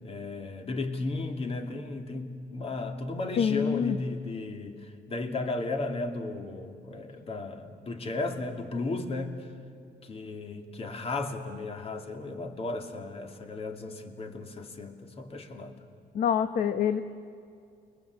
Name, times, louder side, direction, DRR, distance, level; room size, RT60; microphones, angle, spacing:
voice 1, 0.0-9.5 10.0-15.8, left 2 dB, 35° left, 5 dB, 2.8 m, -35 dB
voice 2, 3.4-4.0 16.1-17.0, left 8 dB, 55° left, 9 dB, 1.1 m, -26 dB
29.5 x 22.5 x 8.5 m, 2.3 s
cardioid pair, 110°, 17 cm